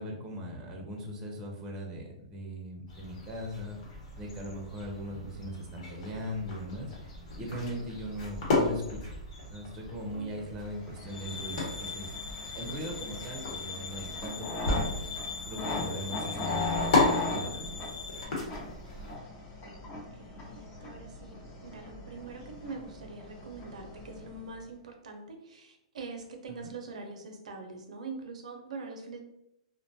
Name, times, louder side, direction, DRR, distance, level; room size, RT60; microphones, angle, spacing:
voice 1, 0.0-3.8 4.2-6.9 7.3-9.2 9.5-12.1 12.5-14.9 15.4-18.0 26.5-26.7, equal, 20° right, 0 dB, 0.5 m, -39 dB
sound 1, 2.9-19.2, left 2 dB, 65° left, 1.1 m, -35 dB
voice 2, 10.1-11.4 18.6-19.1 19.6-19.8 20.1-21.4 21.6-29.2, right 3 dB, 80° right, 4 dB, 0.5 m, -44 dB
sound 2, 10.7-24.6, left 2 dB, 35° left, 0.6 m, -39 dB
sound 3, 11.1-18.2, left 5 dB, 80° left, 0.5 m, -41 dB
2.5 x 2.2 x 2.6 m, 0.81 s
hypercardioid pair, 140°, 4 cm